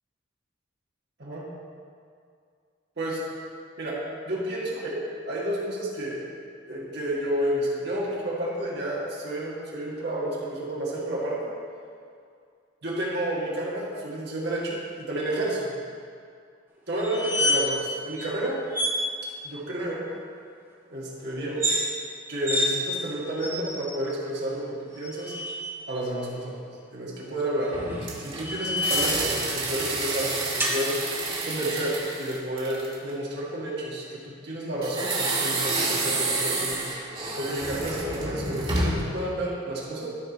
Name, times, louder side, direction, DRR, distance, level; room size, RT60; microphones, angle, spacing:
voice 1, 4.3-5.0 5.3-6.3 6.7-11.5 12.8-15.7 16.9-18.6 19.4-20.0 20.9-21.6 22.3-25.3 25.9-26.6 26.9-27.8 28.2-31.0 31.4-36.9 37.4-40.1, right 1 dB, 65° right, -5 dB, 1.8 m, -30 dB
sound 1, 17.0-17.9 18.2-18.3 18.7-19.0 21.5-21.8 22.4-22.7 23.4-24.0 24.9-25.7 27.6-29.2 30.6-30.8, left 1 dB, 15° right, 1.3 m, -28 dB
sound 2, 27.7-33.1 34.8-39.2, right 2 dB, 30° right, 1.7 m, -29 dB
13.0 x 5.6 x 4.2 m, 2.3 s
head